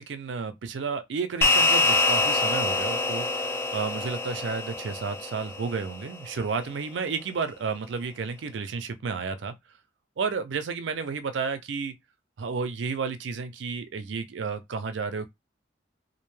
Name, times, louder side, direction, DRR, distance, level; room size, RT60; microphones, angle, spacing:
voice 1, 0.0-9.5 10.2-11.9 12.4-15.3, right 5 dB, 85° right, 0.4 m, -32 dB
sound 1, 1.4-6.1, left 3 dB, 15° left, 0.4 m, -25 dB
2.5 x 2.1 x 3.1 m
head